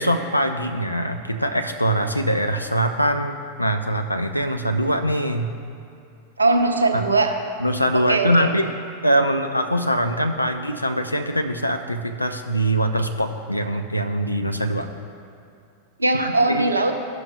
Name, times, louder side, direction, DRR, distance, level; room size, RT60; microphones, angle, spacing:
voice 1, 0.0-5.5 6.9-7.0 7.6-8.7 9.0-14.9 16.1-16.7, equal, 85° left, 5 dB, 0.5 m, -23 dB
voice 2, 6.4-7.4 7.9-8.5 16.0-16.9, right 2 dB, 80° right, 4 dB, 0.7 m, -20 dB
14.5 x 6.1 x 2.3 m, 2.5 s
figure-of-eight pair, 90°, 0 cm